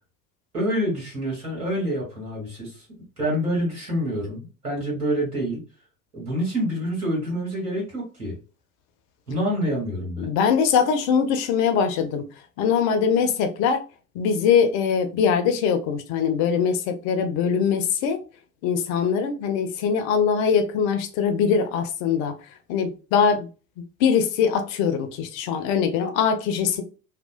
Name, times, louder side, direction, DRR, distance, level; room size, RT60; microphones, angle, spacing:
voice 1, 0.5-2.8 3.2-5.6 6.1-8.4 9.3-10.3, equal, 85° right, 1.4 m, -27 dB
voice 2, 10.2-12.2 12.6-13.8 14.2-18.2 18.6-22.4 22.7-23.5 24.0-26.8, left 7 dB, 40° left, 0.5 m, -22 dB
2.8 x 2.1 x 2.4 m
figure-of-eight pair, 65°, 44 cm